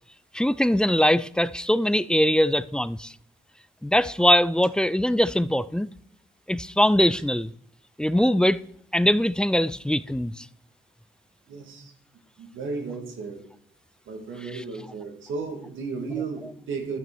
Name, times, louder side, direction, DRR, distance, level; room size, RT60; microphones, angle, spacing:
voice 1, 0.3-3.1 3.8-5.9 6.5-7.5 8.0-8.6 8.9-10.5, equal, 5° left, 0.3 m, -22 dB
voice 2, 11.5-11.9 12.4-13.4 14.1-17.0, right 4 dB, 75° right, 1.9 m, -34 dB
12.0 x 6.0 x 4.5 m
supercardioid pair, 65°, 20 cm